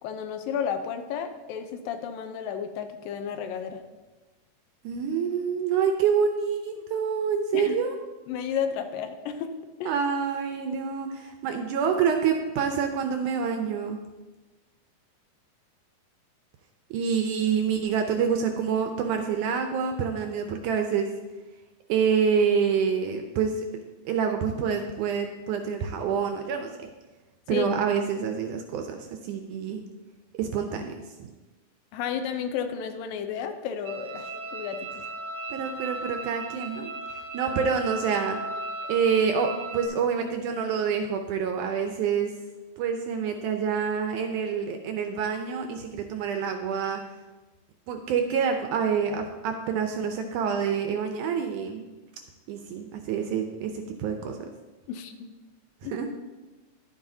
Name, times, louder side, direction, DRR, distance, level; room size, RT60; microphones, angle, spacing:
voice 1, 0.0-3.8 7.5-7.8 8.3-9.5 9.8-9.9 27.5-27.7 31.9-35.0 54.9-55.3 55.8-56.0, left 8 dB, 80° left, 7 dB, 2.4 m, -32 dB
voice 2, 4.8-7.9 9.9-14.0 16.9-21.1 21.9-23.6 24.1-26.9 27.5-29.8 30.3-30.9 31.2-31.3 35.5-36.9 37.3-38.4 38.9-42.3 42.8-47.0 47.9-51.8 52.5-54.5 55.9-56.1, right 6 dB, 80° right, 5 dB, 1.9 m, -27 dB
sound 1, 33.8-39.9, right 2 dB, 60° right, 0.7 m, -36 dB
11.0 x 8.9 x 2.7 m, 1.2 s
omnidirectional pair, 4.0 m